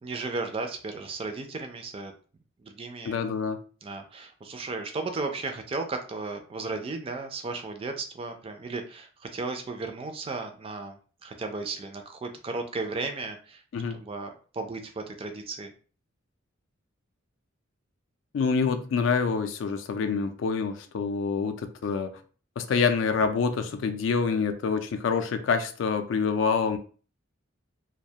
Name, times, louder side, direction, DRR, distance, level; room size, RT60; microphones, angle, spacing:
voice 1, 0.0-2.1 2.6-3.1 3.8-13.6 13.9-15.7, right 3 dB, 30° right, 0.3 m, -35 dB
voice 2, 3.0-3.6 13.7-14.0 18.3-22.2 22.6-26.8, left 5 dB, 65° left, 0.3 m, -26 dB
2.3 x 2.2 x 2.7 m
head